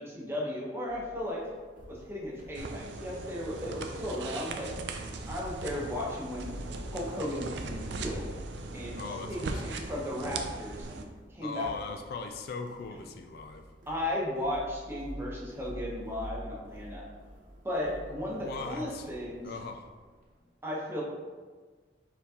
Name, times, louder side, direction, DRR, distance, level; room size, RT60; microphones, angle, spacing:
voice 1, 0.0-1.4 1.9-4.7 5.3-6.5 6.9-8.3 8.7-11.0 11.3-11.9 13.9-17.1 17.6-19.5 20.6-21.0, left 1 dB, 15° right, -4 dB, 0.8 m, -35 dB
sound 1, 0.9-20.4, equal, 50° right, 0.9 m, -48 dB
sound 2, 2.6-11.0, right 3 dB, 70° right, 0.4 m, -39 dB
voice 2, 9.0-9.6 11.4-13.7 18.3-19.1 19.4-19.9, left 4 dB, 60° left, 6 dB, 0.3 m, -39 dB
4.5 x 3.9 x 2.8 m, 1.4 s
head